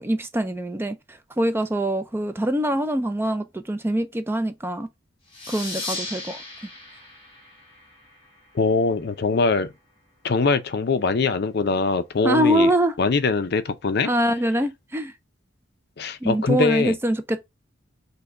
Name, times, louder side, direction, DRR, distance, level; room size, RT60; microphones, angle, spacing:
voice 1, 0.0-4.9 5.5-6.4 12.2-13.0 14.0-15.1 16.2-17.4, right 1 dB, 10° right, 0.3 m, -24 dB
sound 1, 5.3-8.6, left 2 dB, 25° left, 1.5 m, -36 dB
voice 2, 8.5-9.7 10.2-12.7 13.0-14.1 16.0-16.9, left 4 dB, 55° left, 0.5 m, -22 dB
5.4 x 2.2 x 3.7 m
head